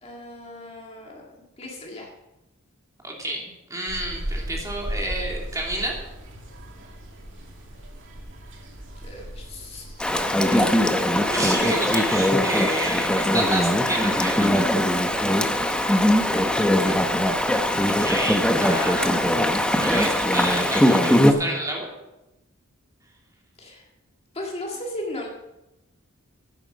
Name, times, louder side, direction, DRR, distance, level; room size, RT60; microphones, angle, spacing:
voice 1, 0.0-2.1 9.0-10.1 10.5-10.9 16.8-17.0 23.6-23.9 24.3-25.3, left 1 dB, 30° left, -1 dB, 1.9 m, -36 dB
voice 2, 3.0-6.0 11.0-14.7 17.5-19.3 19.8-21.9, right 1 dB, 15° right, -1 dB, 2.8 m, -30 dB
sound 1, 3.9-20.8, equal, 65° right, 2.4 m, -39 dB
Chatter / Stream, 10.0-21.3, left 1 dB, 5° left, 0.8 m, -21 dB
11.0 x 9.2 x 6.3 m, 0.95 s
head